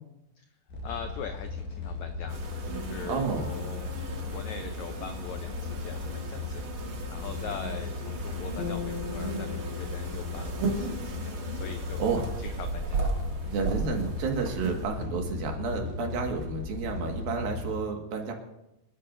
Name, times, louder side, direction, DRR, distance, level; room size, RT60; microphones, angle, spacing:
sound 1, 0.7-17.8, left 4 dB, 65° left, 5.1 m, -37 dB
voice 1, 0.8-3.9 4.3-13.1, left 7 dB, 90° left, 7 dB, 1.6 m, -42 dB
sound 2, 2.3-14.9, right 3 dB, 45° right, 1.9 m, -36 dB
voice 2, 3.1-3.5 12.0-12.3 13.4-18.3, right 4 dB, 75° right, 2 dB, 3.4 m, -31 dB
sound 3, 8.6-11.9, left 5 dB, 45° left, 3.3 m, -40 dB
28.0 x 12.0 x 2.6 m, 0.89 s
omnidirectional pair, 4.3 m